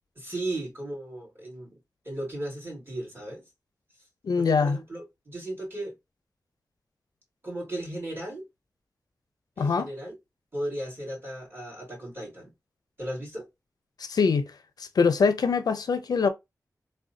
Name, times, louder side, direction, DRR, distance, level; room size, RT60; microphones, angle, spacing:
voice 1, 0.2-1.8 2.0-3.4 4.4-6.0 7.4-8.4 9.6-10.2 10.5-12.5 13.0-13.5, right 1 dB, 35° right, 2.1 m, -36 dB
voice 2, 4.2-4.8 9.6-9.9 14.0-14.5 15.0-16.3, left 5 dB, 85° left, 0.5 m, -23 dB
3.5 x 2.2 x 2.6 m
wide cardioid pair, 65°, 7 cm